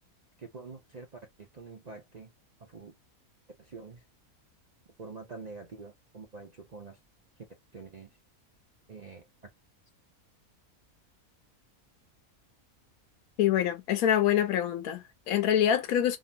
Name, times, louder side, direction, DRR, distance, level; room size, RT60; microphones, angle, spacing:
voice 1, 0.4-1.1 1.4-2.3 2.6-2.9 3.6-4.0 5.0-7.0 7.4-7.5 7.7-8.2 8.9-9.3, right 4 dB, 45° right, 0.5 m, -46 dB
voice 2, 13.4-16.2, left 10 dB, 80° left, 1.1 m, -25 dB
3.7 x 2.1 x 2.6 m
omnidirectional pair, 1.5 m